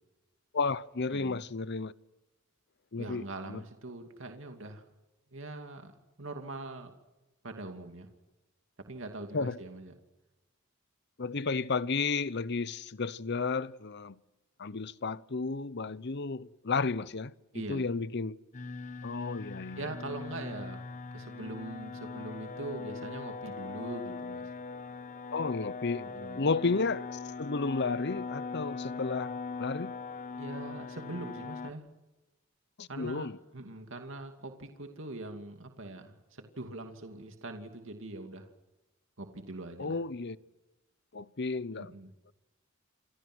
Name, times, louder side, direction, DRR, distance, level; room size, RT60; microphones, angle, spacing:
voice 1, 0.5-1.9 2.9-3.6 9.3-9.6 11.2-14.2 14.6-17.3 17.7-18.4 19.0-19.9 25.3-26.1 26.3-30.0 32.8-33.4 39.8-40.4 41.1-41.9, left 4 dB, 55° left, 0.8 m, -32 dB
voice 2, 3.0-4.8 5.3-5.9 6.2-6.9 7.4-8.1 8.9-10.0 17.5-17.9 19.7-20.8 21.1-24.5 26.0-26.4 30.4-31.9 32.9-33.3 33.5-38.5 39.2-40.0 41.7-42.1, right 2 dB, 65° right, 2.6 m, -42 dB
sound 1, 18.5-31.7, left 4 dB, 35° left, 1.1 m, -40 dB
28.5 x 26.0 x 6.3 m
head